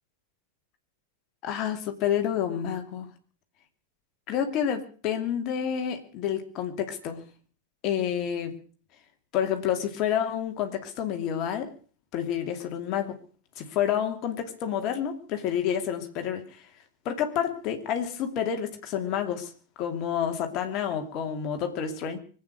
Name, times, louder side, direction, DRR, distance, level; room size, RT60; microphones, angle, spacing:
voice 1, 1.4-3.1 4.3-7.2 7.8-8.6 9.3-11.7 12.1-13.2 13.6-16.7 17.0-19.5 19.8-22.2, left 9 dB, 40° left, 5 dB, 2.6 m, -29 dB
24.5 x 8.9 x 6.3 m, 0.41 s
figure-of-eight pair, 90°, 0 cm